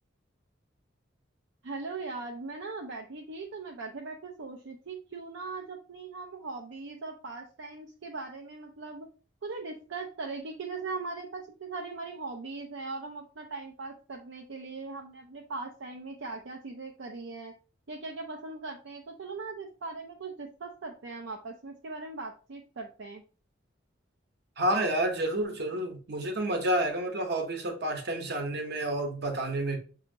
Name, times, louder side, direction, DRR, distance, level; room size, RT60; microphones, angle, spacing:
voice 1, 1.6-9.1 9.4-17.5 17.9-23.2, right 3 dB, 75° right, 0.5 m, -40 dB
voice 2, 24.6-29.8, right 1 dB, 60° right, 0.9 m, -29 dB
6.0 x 2.8 x 2.7 m
head